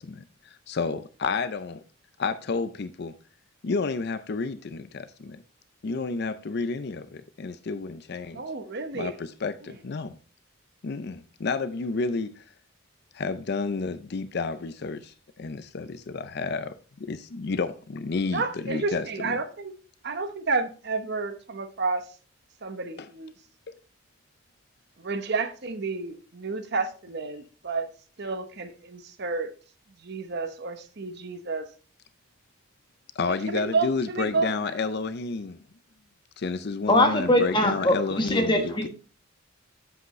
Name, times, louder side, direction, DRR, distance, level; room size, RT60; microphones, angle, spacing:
voice 1, 0.0-1.8 2.2-3.1 3.6-5.4 5.8-8.4 8.9-10.2 10.8-12.4 13.1-19.4 23.0-23.1 23.7-23.8 33.2-35.6 36.4-38.9, left 4 dB, 50° left, 0.5 m, -31 dB
voice 2, 8.3-9.1 18.3-19.7 20.0-22.1 22.6-23.3 25.0-27.9 28.2-29.5 30.0-31.7 33.5-34.5, right 4 dB, 50° right, 0.9 m, -30 dB
voice 3, 36.9-38.9, left 1 dB, 20° left, 1.2 m, -22 dB
7.9 x 7.9 x 3.1 m
head